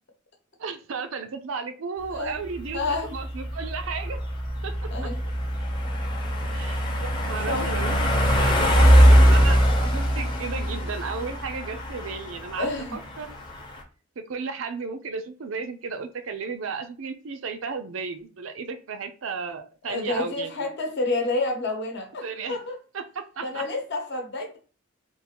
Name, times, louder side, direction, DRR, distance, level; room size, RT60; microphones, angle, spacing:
voice 1, 0.6-2.8 3.1-4.2 4.6-4.9 6.5-13.3 14.2-20.7 22.2-22.6 22.9-23.6, right 5 dB, 70° right, 0.5 m, -34 dB
voice 2, 2.1-2.4 2.7-3.1 4.9-5.2 7.5-7.7 12.6-13.0 19.8-22.8 23.4-24.6, left 2 dB, 55° left, 0.9 m, -29 dB
sound 1, 2.1-13.8, equal, 20° left, 0.7 m, -22 dB
3.7 x 2.5 x 2.9 m
head